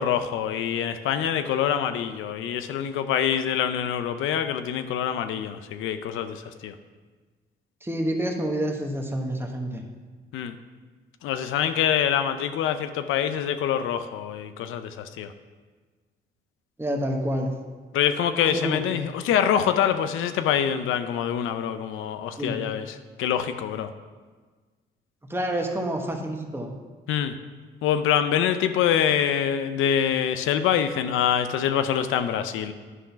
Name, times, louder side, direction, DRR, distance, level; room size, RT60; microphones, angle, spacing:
voice 1, 0.0-6.7 10.3-10.5 11.2-15.3 17.9-22.9 23.2-23.9 27.1-27.3 27.8-32.7, left 9 dB, 85° left, 10 dB, 0.5 m, -25 dB
voice 2, 7.8-9.8 16.8-17.5 18.5-19.1 22.4-22.6 25.2-26.7, right 1 dB, 10° right, 2 dB, 1.2 m, -28 dB
11.0 x 3.9 x 5.7 m, 1.4 s
cardioid pair, 90°, 20 cm